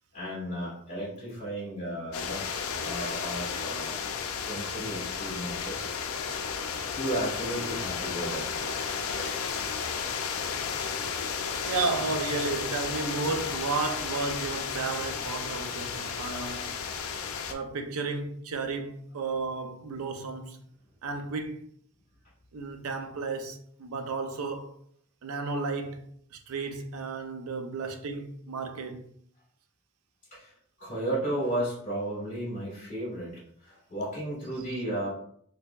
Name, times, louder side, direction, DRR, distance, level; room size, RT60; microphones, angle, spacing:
voice 1, 0.1-3.9 4.3-5.9 6.5-8.5 9.0-9.7 16.3-16.4 30.3-35.1, right 1 dB, 40° left, 1.5 m, -34 dB
sound 1, 2.1-17.5, left 6 dB, 75° left, 0.4 m, -33 dB
voice 2, 11.6-16.7 17.5-20.6 21.0-21.7 22.5-24.8 25.2-29.1, right 4 dB, 90° right, 0.5 m, -33 dB
4.4 x 2.6 x 2.3 m
head